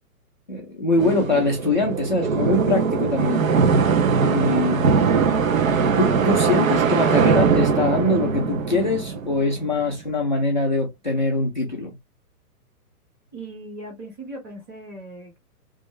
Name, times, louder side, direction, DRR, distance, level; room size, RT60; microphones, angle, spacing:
voice 1, 0.5-3.5 4.2-5.2 5.4-5.6 6.0-12.0, left 2 dB, 30° left, 0.4 m, -23 dB
sound 1, 1.0-9.8, right 5 dB, 60° right, 0.8 m, -21 dB
voice 2, 13.3-15.4, right 2 dB, 15° right, 1.2 m, -38 dB
3.5 x 2.6 x 3.0 m
hypercardioid pair, 175°, 46 cm